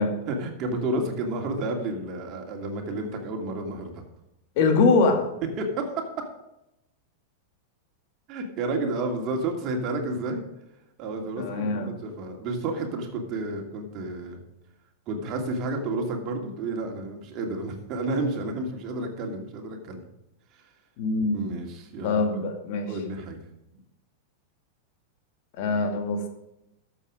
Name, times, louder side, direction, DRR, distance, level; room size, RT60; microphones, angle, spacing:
voice 1, 0.3-4.0 5.6-5.9 6.2-6.3 8.3-10.4 11.0-14.4 15.1-20.0 21.3-22.4 22.9-23.4, right 2 dB, 45° right, 3 dB, 2.7 m, -31 dB
voice 2, 4.6-5.3 11.4-12.0 21.0-21.5 22.0-22.9 25.6-26.2, left 3 dB, 55° left, 5 dB, 2.2 m, -23 dB
12.5 x 7.3 x 5.1 m, 0.88 s
hypercardioid pair, 105°, 0 cm